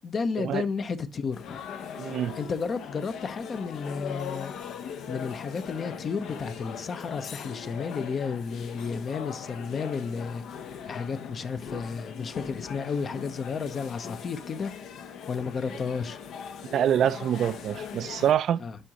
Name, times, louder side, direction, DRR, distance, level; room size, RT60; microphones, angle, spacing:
voice 1, 0.0-1.6 2.4-4.5 5.1-10.4 10.9-14.7 15.3-16.2 18.6-18.8, left 5 dB, 40° left, 0.7 m, -32 dB
sound 1, 1.3-18.3, left 7 dB, 65° left, 0.8 m, -40 dB
voice 2, 2.0-2.4 16.7-18.6, right 10 dB, 60° right, 0.3 m, -25 dB
11.0 x 3.8 x 2.9 m
cardioid pair, 125°, 0 cm